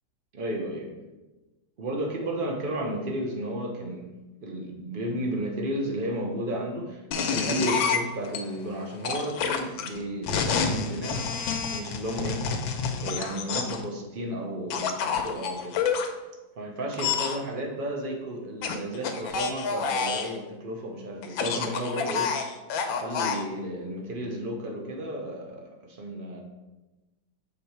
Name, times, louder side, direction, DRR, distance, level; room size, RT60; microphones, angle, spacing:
voice 1, 0.3-1.0 1.8-4.1 4.4-11.4 11.7-12.7 13.0-15.8 16.6-22.3 22.9-26.4, right 1 dB, 45° right, 1 dB, 0.7 m, -33 dB
sound 1, 7.1-8.4 9.0-13.8 14.7-16.1 16.9-17.4 18.6-20.3 21.2-23.4, left 6 dB, 85° left, 1.5 m, -28 dB
6.4 x 3.8 x 4.5 m, 1.1 s
omnidirectional pair, 2.1 m